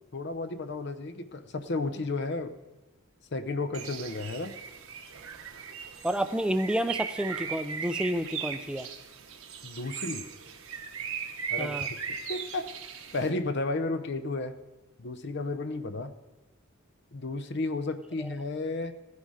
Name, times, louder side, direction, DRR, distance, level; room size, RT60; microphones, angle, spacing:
voice 1, 0.1-2.5 3.3-4.5 9.6-10.2 11.5-12.7 13.1-14.5 15.0-16.1 17.1-18.9, left 3 dB, 55° left, 10 dB, 0.7 m, -33 dB
Bird, 3.7-13.3, right 7 dB, 80° right, 1.2 m, -38 dB
voice 2, 6.0-8.9 11.6-11.9 18.2-18.3, right 1 dB, 5° right, 10 dB, 0.5 m, -30 dB
15.5 x 9.6 x 4.8 m, 1.1 s
head